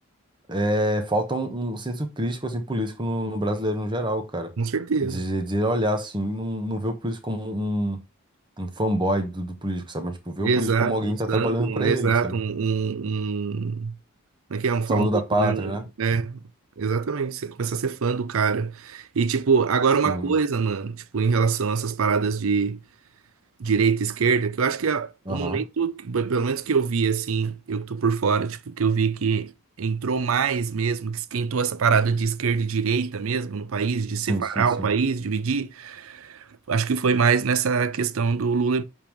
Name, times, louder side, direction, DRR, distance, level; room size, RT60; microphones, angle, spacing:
voice 1, 0.5-4.5 5.0-8.0 8.6-12.4 14.9-15.8 20.0-20.3 25.3-25.6 34.3-34.9, equal, 20° right, 1.1 m, -26 dB
voice 2, 4.6-5.3 10.4-14.0 14.5-15.7 16.0-16.4 16.8-22.8 23.6-29.5 29.8-38.8, right 5 dB, 70° right, 0.5 m, -24 dB
7.0 x 3.6 x 4.4 m
head